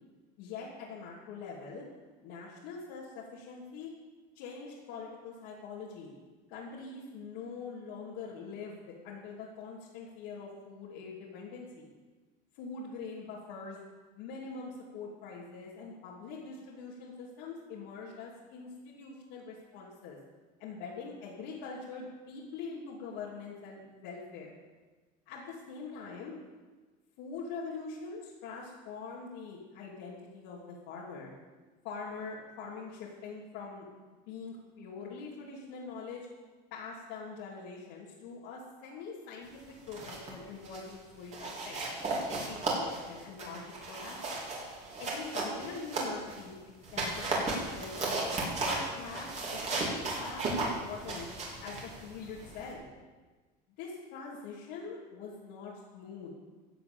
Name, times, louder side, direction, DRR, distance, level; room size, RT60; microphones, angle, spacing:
voice 1, 0.4-1.8 2.2-3.9 4.3-6.1 6.5-11.9 12.5-13.8 14.2-20.2 20.6-24.5 25.3-26.3 27.2-31.3 31.8-33.9 34.3-36.2 36.7-41.9 42.4-44.5 45.0-46.6 46.9-51.3 51.6-52.8 53.8-56.3, left 4 dB, 75° left, -6 dB, 3.1 m, -44 dB
sound 1, 39.7-40.3 40.6-40.9 41.3-46.4 46.8-52.7, right 2 dB, 35° right, 4.0 m, -35 dB
15.5 x 8.1 x 7.1 m, 1.3 s
cardioid pair, 135°, 21 cm